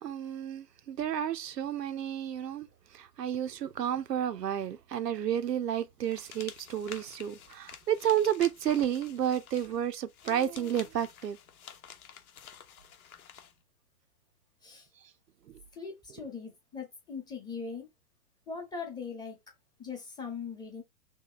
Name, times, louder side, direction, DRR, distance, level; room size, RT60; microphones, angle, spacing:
voice 1, 0.0-2.7 2.9-11.4, right 10 dB, 80° right, 0.7 m, -31 dB
sound 1, 6.0-13.5, left 8 dB, 60° left, 0.9 m, -50 dB
voice 2, 15.7-17.9 18.5-19.4 19.8-20.8, left 5 dB, 10° left, 0.9 m, -40 dB
3.0 x 2.7 x 3.7 m
figure-of-eight pair, 120°, 48 cm